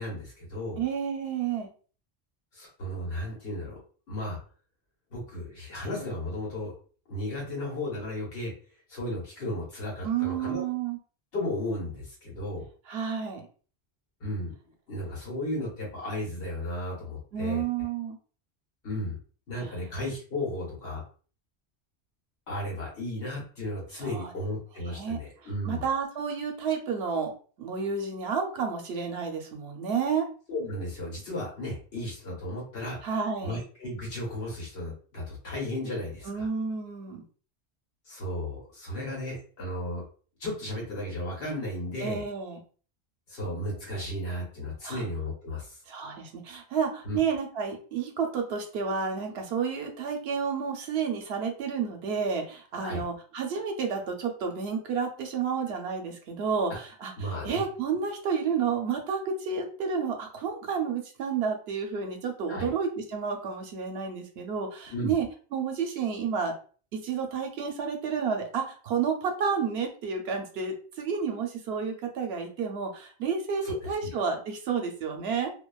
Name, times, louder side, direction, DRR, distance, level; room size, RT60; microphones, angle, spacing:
voice 1, 0.0-0.8 2.5-3.8 4.1-4.4 5.1-6.7 7.1-8.5 8.9-10.6 11.3-12.6 14.2-14.5 14.9-17.6 18.8-19.2 19.5-21.0 22.5-25.8 30.5-33.0 33.4-36.5 38.1-40.0 40.4-42.2 43.3-45.8 47.0-47.2 52.8-53.0 56.7-56.8 57.2-57.6 62.5-62.7 64.9-65.1 73.6-74.1, left 1 dB, 70° left, -3 dB, 1.3 m, -34 dB
voice 2, 0.8-1.7 10.0-11.0 12.9-13.5 17.3-18.2 19.6-19.7 23.9-24.3 24.9-25.2 25.6-27.3 27.6-30.3 33.0-33.6 36.2-37.2 42.0-42.6 44.8-45.0 45.9-65.3 65.5-66.5 66.9-75.5, right 6 dB, 70° right, 3 dB, 0.8 m, -30 dB
2.5 x 2.2 x 2.3 m, 0.40 s
omnidirectional pair, 1.1 m